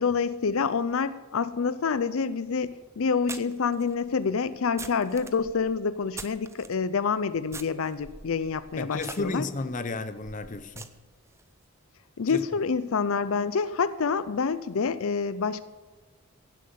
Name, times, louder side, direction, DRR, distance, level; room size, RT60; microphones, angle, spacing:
voice 1, 0.0-9.4 12.2-15.6, left 5 dB, 75° left, 0.5 m, -27 dB
sound 1, 2.2-2.3 3.3-6.8 7.5-11.4, right 4 dB, 15° right, 0.5 m, -44 dB
voice 2, 8.8-10.9 12.3-12.4, left 2 dB, 35° left, 0.7 m, -33 dB
16.0 x 7.7 x 6.8 m
head